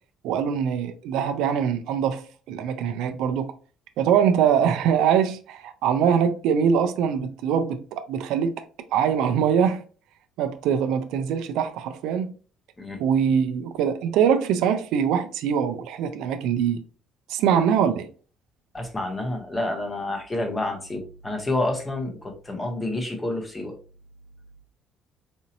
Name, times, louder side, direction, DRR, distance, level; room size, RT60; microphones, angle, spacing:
voice 1, 0.2-3.5 4.0-8.5 8.9-9.8 10.4-12.3 13.0-16.8 17.3-18.1, right 8 dB, 80° right, 0.4 m, -23 dB
voice 2, 18.7-23.7, left 2 dB, 15° left, 0.6 m, -29 dB
4.1 x 2.6 x 2.7 m
cardioid pair, 175°, 0 cm